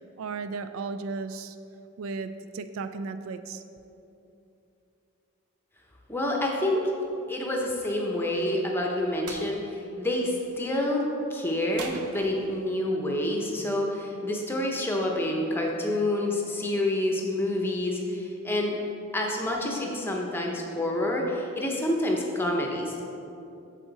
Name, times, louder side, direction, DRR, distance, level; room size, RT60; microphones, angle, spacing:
voice 1, 0.2-1.6 2.0-3.6, right 4 dB, 65° right, 10 dB, 0.3 m, -35 dB
voice 2, 6.1-6.9 7.3-9.6 10.0-11.0 11.3-18.8 19.1-23.0, left 1 dB, 10° left, 0 dB, 0.8 m, -28 dB
sound 1, 9.3-9.5 11.8-12.7, right 5 dB, 85° right, 0.7 m, -41 dB
8.3 x 7.0 x 4.1 m, 2.8 s
head